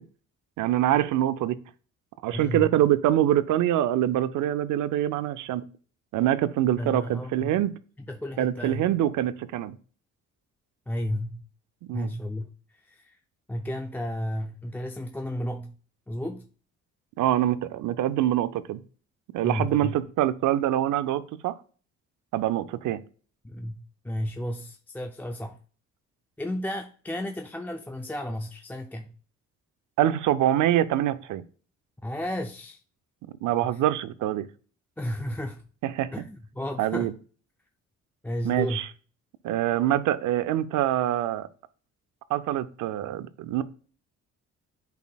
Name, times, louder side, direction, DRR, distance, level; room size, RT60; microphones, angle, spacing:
voice 1, 0.6-1.6 2.2-5.6 6.1-7.7 8.4-9.8 11.9-12.1 17.2-18.8 19.3-21.6 22.3-23.0 30.0-31.4 33.4-34.5 35.8-36.1 36.8-37.1 38.4-38.9 39.4-41.5 42.3-43.6, right 12 dB, 80° right, 0.5 m, -25 dB
voice 2, 2.3-2.7 6.7-7.6 8.1-8.9 10.9-11.5 11.9-12.5 12.8-13.2 13.5-15.8 16.1-16.5 19.4-20.0 23.4-25.6 26.4-29.1 32.0-32.8 35.0-35.6 36.1-37.1 38.2-38.8, left 1 dB, 5° left, 0.4 m, -33 dB
10.5 x 4.1 x 2.3 m
cardioid pair, 90°, 30 cm